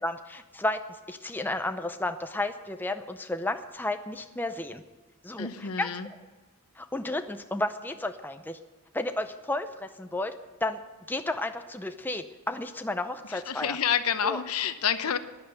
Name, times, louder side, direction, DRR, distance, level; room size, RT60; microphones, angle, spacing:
voice 1, 0.0-0.8 1.1-4.8 5.2-5.9 6.8-8.6 8.9-10.3 10.6-10.8 11.1-13.8 14.2-14.4, left 2 dB, 10° left, 7 dB, 0.5 m, -32 dB
voice 2, 5.4-6.1 13.3-15.2, left 7 dB, 80° left, 10 dB, 0.9 m, -28 dB
12.5 x 10.0 x 7.9 m, 1.3 s
head